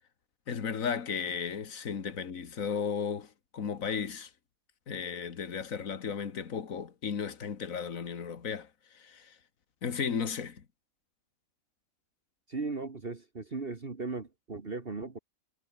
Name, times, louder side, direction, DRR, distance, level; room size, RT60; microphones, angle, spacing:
voice 1, 0.5-4.3 4.9-8.7 8.9-9.4 9.8-10.6, left 6 dB, 65° left, 2.1 m, -35 dB
voice 2, 12.5-15.2, right 3 dB, 40° right, 2.1 m, -37 dB
omnidirectional pair, 1.5 m